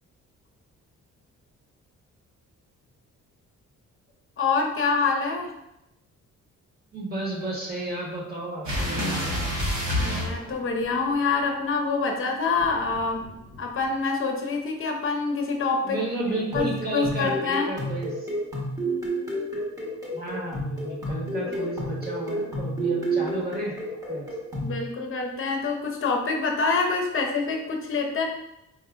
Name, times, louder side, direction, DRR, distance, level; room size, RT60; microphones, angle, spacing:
voice 1, 4.4-5.5 10.0-13.2 13.6-16.0 16.5-17.7 21.4-21.5 24.6-28.2, left 4 dB, 45° left, 2 dB, 0.7 m, -26 dB
voice 2, 6.9-9.5 15.8-18.2 20.1-23.8 24.1-24.3, right 2 dB, 30° right, -3 dB, 1.2 m, -32 dB
sound 1, 8.6-11.1 12.5-13.8, left 1 dB, 70° right, 1.3 m, -29 dB
sound 2, 16.3-24.8, right 1 dB, 10° right, 1.0 m, -31 dB
4.8 x 2.6 x 2.4 m, 0.86 s
cardioid pair, 110°, 29 cm